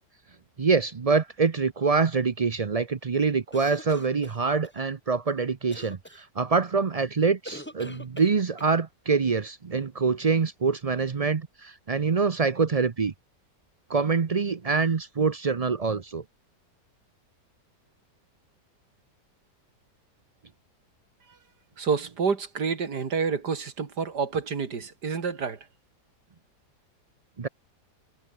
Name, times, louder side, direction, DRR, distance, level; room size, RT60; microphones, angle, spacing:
voice 1, 0.6-13.1 13.9-16.2 27.4-27.5, right 5 dB, 55° right, 0.4 m, -25 dB
sound 1, 3.5-4.8 5.7-6.2 7.4-8.7, equal, 5° left, 6.9 m, -43 dB
voice 2, 21.8-25.6, right 5 dB, 75° right, 2.8 m, -28 dB
omnidirectional pair, 1.8 m